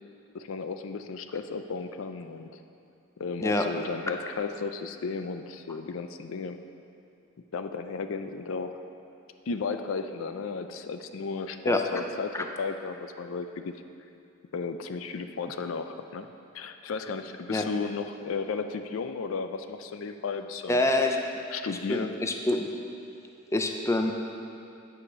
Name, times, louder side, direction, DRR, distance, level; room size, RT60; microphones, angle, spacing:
voice 1, 0.3-2.6 3.2-6.6 7.5-8.8 9.5-13.7 14.5-16.3 16.5-20.9 21.5-22.2, left 4 dB, 80° left, 8 dB, 0.4 m, -34 dB
voice 2, 20.7-21.2 21.7-22.7 23.5-24.1, left 2 dB, 15° left, 3 dB, 0.5 m, -26 dB
8.4 x 5.0 x 6.7 m, 2.7 s
head